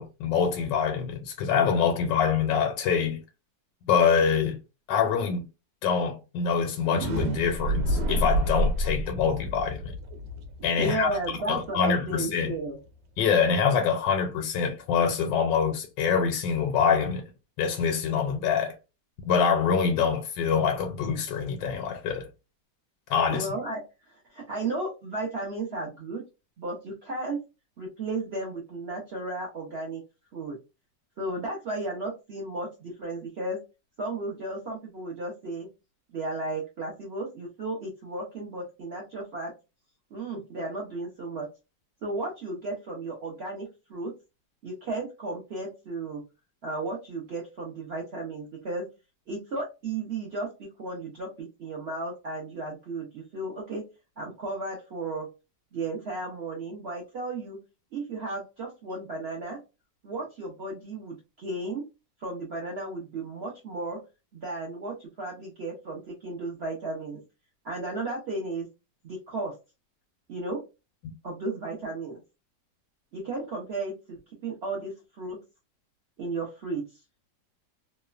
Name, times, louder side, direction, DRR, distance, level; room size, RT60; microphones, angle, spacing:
voice 1, 0.0-3.2 3.9-4.6 4.9-5.4 5.8-9.9 10.6-11.1 11.5-12.5 13.2-17.2 17.6-18.7 19.2-22.3 23.1-23.5, left 6 dB, 80° left, 1.2 m, -25 dB
sound 1, 6.7-12.6, equal, 85° right, 1.2 m, -29 dB
voice 2, 10.8-12.8 23.3-23.8 24.1-26.2 26.6-27.4 27.8-30.0 30.3-30.6 31.2-33.6 34.0-35.7 36.1-39.5 40.1-41.5 42.0-44.1 44.6-46.2 46.6-48.8 49.3-53.8 54.2-55.3 55.7-57.6 57.9-59.6 60.0-61.8 62.2-64.0 64.3-67.2 67.6-68.7 69.0-69.5 70.3-70.6 71.2-72.2 73.1-75.4 76.2-76.8, right 2 dB, 65° right, 0.6 m, -34 dB
3.0 x 2.1 x 2.3 m
omnidirectional pair, 1.9 m